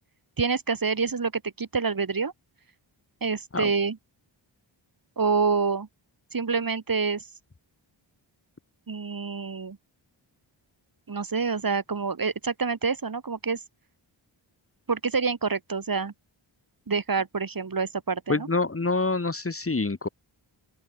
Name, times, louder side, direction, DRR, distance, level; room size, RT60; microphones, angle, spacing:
voice 1, 0.4-2.3 3.2-4.0 5.2-5.9 6.3-7.2 8.9-9.8 11.1-13.6 14.9-16.1 16.9-18.5, right 5 dB, 45° right, 5.6 m, -27 dB
voice 2, 18.3-20.1, left 3 dB, 30° left, 3.4 m, -26 dB
open air
wide cardioid pair, 155°, 47 cm